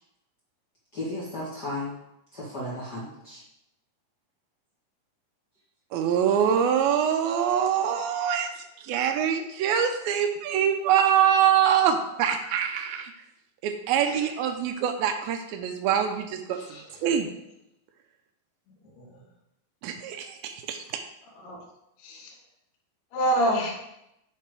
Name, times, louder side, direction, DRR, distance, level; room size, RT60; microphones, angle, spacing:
voice 1, 0.9-1.9 2.3-3.4, left 1 dB, 55° left, -8 dB, 1.1 m, -34 dB
voice 2, 5.9-8.5 8.8-13.1 13.6-16.6 17.0-17.3 19.8-20.8, right 8 dB, 80° right, 6 dB, 2.3 m, -24 dB
voice 3, 14.0-14.4 16.5-17.1 18.9-19.2 21.2-21.6 22.0-22.3 23.1-23.7, right 1 dB, 80° left, -1 dB, 3.4 m, -29 dB
9.1 x 3.7 x 4.7 m, 0.84 s
omnidirectional pair, 4.5 m